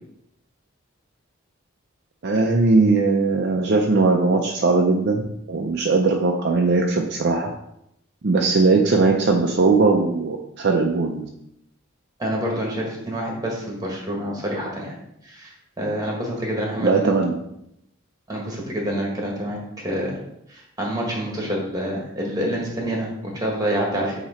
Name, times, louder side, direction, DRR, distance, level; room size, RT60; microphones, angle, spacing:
voice 1, 2.2-7.5 8.2-11.3 16.8-17.4, right 3 dB, 50° right, 2 dB, 0.5 m, -19 dB
voice 2, 12.2-14.9 15.2-17.2 18.3-19.6 19.8-20.2 20.5-24.1, equal, 15° right, -1 dB, 1.5 m, -27 dB
8.5 x 2.9 x 4.3 m, 0.80 s
head